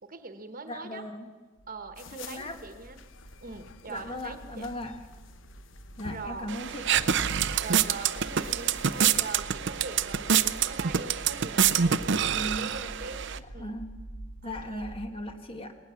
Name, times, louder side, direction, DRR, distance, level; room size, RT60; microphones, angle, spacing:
voice 1, 0.0-1.0 1.7-3.0 3.4-4.7 6.1-6.5 7.6-13.2 13.5-13.8 14.4-14.8, right 4 dB, 45° right, 8 dB, 1.3 m, -42 dB
voice 2, 0.7-1.3 2.1-2.6 3.9-5.0 6.0-7.1 12.2-12.7 13.4-14.0 14.4-15.8, left 1 dB, 30° left, 6 dB, 1.8 m, -38 dB
sound 1, 1.6-15.1, right 1 dB, 50° left, 2.4 m, -47 dB
sound 2, 2.0-9.4, left 5 dB, 75° left, 1.0 m, -49 dB
sound 3, 6.5-13.4, right 8 dB, 65° right, 0.6 m, -26 dB
20.0 x 18.5 x 7.3 m, 1.3 s
head